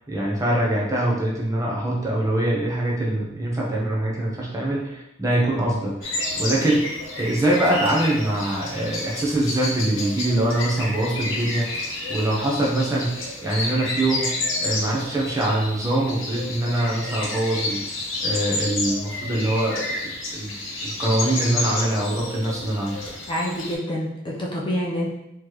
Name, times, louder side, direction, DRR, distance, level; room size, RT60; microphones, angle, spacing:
voice 1, 0.1-6.9 7.2-17.8 18.2-20.5 20.8-23.0, right 1 dB, 15° right, -4 dB, 0.7 m, -24 dB
sound 1, 6.0-23.7, left 2 dB, 70° left, 0.9 m, -30 dB
voice 2, 23.3-25.1, equal, 25° left, -4 dB, 0.6 m, -27 dB
4.1 x 3.1 x 3.0 m, 0.88 s
head